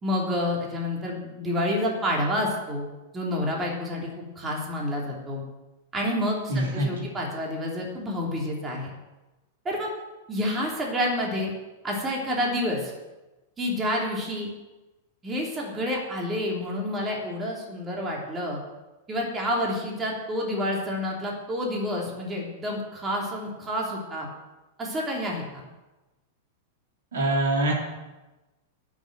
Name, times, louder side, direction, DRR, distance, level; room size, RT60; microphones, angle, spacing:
voice 1, 0.0-2.8 3.1-5.4 5.9-8.9 9.6-9.9 10.3-11.5 11.8-12.9 13.6-14.5 15.2-18.6 19.1-24.3 24.8-25.6, left 1 dB, 20° right, -2 dB, 3.1 m, -29 dB
voice 2, 6.5-7.1 27.1-27.7, right 1 dB, 65° right, -1 dB, 3.9 m, -24 dB
11.5 x 6.4 x 9.2 m, 1.1 s
figure-of-eight pair, 95°, 0 cm